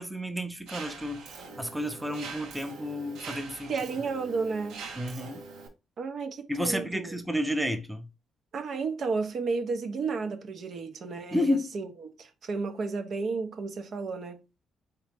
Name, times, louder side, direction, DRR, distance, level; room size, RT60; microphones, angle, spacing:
voice 1, 0.0-3.7 5.0-5.4 6.5-8.1 11.3-11.7, equal, 10° right, 0.6 m, -31 dB
Mechanisms, 0.7-5.7, right 4 dB, 80° right, 0.9 m, -43 dB
voice 2, 3.7-4.8 6.0-7.1 8.5-14.4, right 4 dB, 60° right, 0.7 m, -32 dB
3.8 x 3.2 x 3.4 m
cardioid pair, 90°, 0 cm